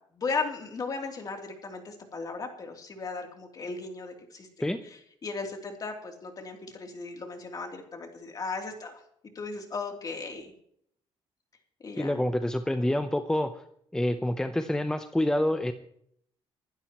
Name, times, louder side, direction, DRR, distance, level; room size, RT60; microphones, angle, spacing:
voice 1, 0.1-9.0 9.3-10.5 11.8-12.1, left 4 dB, 40° left, 2 dB, 3.0 m, -36 dB
voice 2, 12.0-13.6 13.9-15.7, left 1 dB, 5° left, 8 dB, 0.7 m, -27 dB
25.5 x 12.0 x 3.0 m, 0.68 s
cardioid pair, 120°, 10 cm